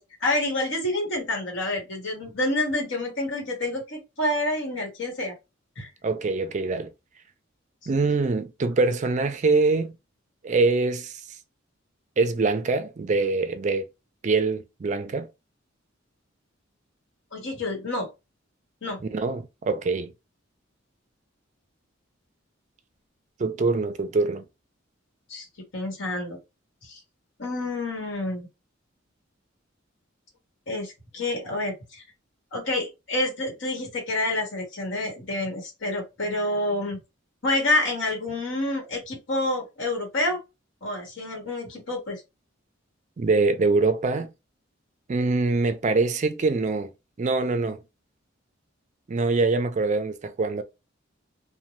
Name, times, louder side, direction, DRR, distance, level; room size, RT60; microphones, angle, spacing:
voice 1, 0.2-5.3 5.8-5.9 17.3-18.1 18.8-19.0 25.3-25.4 25.7-26.4 26.8-27.0 27.4-28.5 30.7-32.0 32.5-37.0 37.4-40.4 40.8-42.2, left 1 dB, 65° left, 1.2 m, -28 dB
voice 2, 6.0-6.9 7.9-10.0 10.4-11.2 12.2-13.9 14.2-15.3 19.0-20.1 23.4-24.4 43.2-44.3 45.1-46.9 47.2-47.8 49.1-50.6, right 3 dB, 40° right, 0.4 m, -24 dB
2.6 x 2.1 x 3.0 m
head